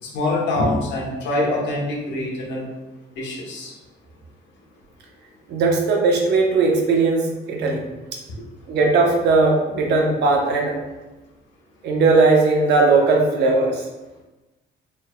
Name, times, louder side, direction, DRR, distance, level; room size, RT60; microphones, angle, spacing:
voice 1, 0.0-2.7 3.2-3.7, left 2 dB, 80° left, -3 dB, 1.0 m, -24 dB
voice 2, 5.5-7.8 8.7-10.7 11.8-13.8, right 3 dB, 65° right, 0 dB, 0.8 m, -18 dB
4.6 x 3.6 x 2.2 m, 1.1 s
cardioid pair, 175°, 19 cm